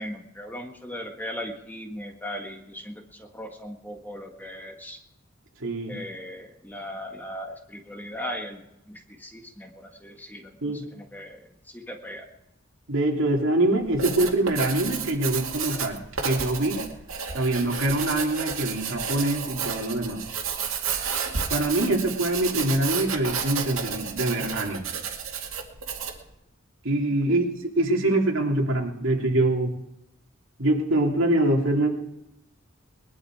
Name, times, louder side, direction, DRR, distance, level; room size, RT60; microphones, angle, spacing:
voice 1, 0.0-5.0 5.9-12.3 27.3-27.4, equal, 10° left, 3 dB, 1.7 m, -38 dB
voice 2, 5.6-6.0 10.6-10.8 12.9-16.0 16.2-16.8 17.3-20.2 21.5-24.8 26.8-27.5 27.7-29.7 30.6-31.9, right 1 dB, 65° right, 1 dB, 3.0 m, -24 dB
Writing, 13.8-26.3, right 6 dB, 85° right, 2.3 m, -31 dB
21.0 x 12.0 x 4.8 m, 0.87 s
head